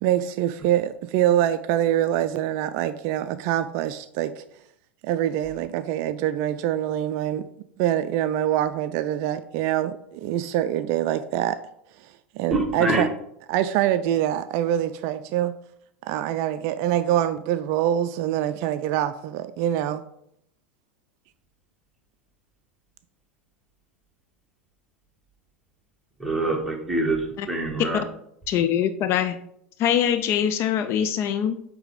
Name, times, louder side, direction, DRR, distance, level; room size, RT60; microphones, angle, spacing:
voice 1, 0.0-4.4 5.0-7.4 7.8-11.6 12.0-13.1 13.5-15.5 16.0-20.0, right 11 dB, 50° right, 0.4 m, -25 dB
voice 2, 12.5-13.0 26.2-28.0, right 2 dB, ahead, 1.7 m, -25 dB
voice 3, 28.5-29.4 29.8-31.6, left 9 dB, 40° left, 0.4 m, -23 dB
7.9 x 3.3 x 5.0 m
figure-of-eight pair, 85°, 7 cm